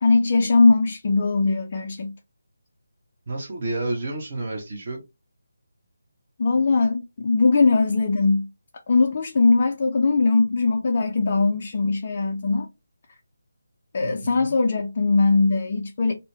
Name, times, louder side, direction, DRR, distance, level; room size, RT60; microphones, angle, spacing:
voice 1, 0.0-2.1 6.4-8.5 8.9-12.7 13.9-16.1, left 3 dB, 40° left, 0.4 m, -20 dB
voice 2, 3.3-5.0 14.0-14.5, right 2 dB, 40° right, 0.9 m, -30 dB
2.7 x 2.1 x 3.0 m
figure-of-eight pair, 155°, 0 cm